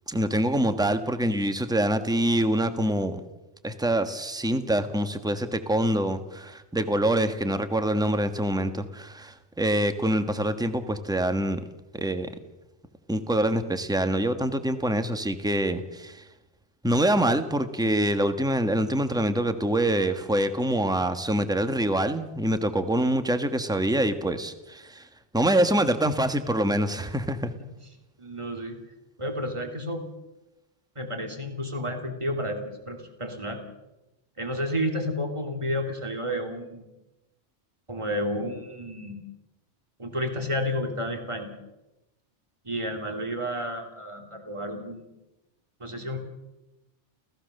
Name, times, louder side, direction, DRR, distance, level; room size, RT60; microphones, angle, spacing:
voice 1, 0.1-3.2 3.6-11.6 11.9-12.3 13.1-16.2 16.8-25.1 25.3-27.5, right 1 dB, 5° right, 9 dB, 1.4 m, -25 dB
voice 2, 28.2-28.8 29.2-30.0 30.9-33.6 34.4-36.9 37.9-39.2 40.0-41.5 42.6-45.1 45.8-46.2, equal, 25° right, 4 dB, 3.1 m, -31 dB
29.5 x 16.0 x 6.7 m, 0.97 s
omnidirectional pair, 1.2 m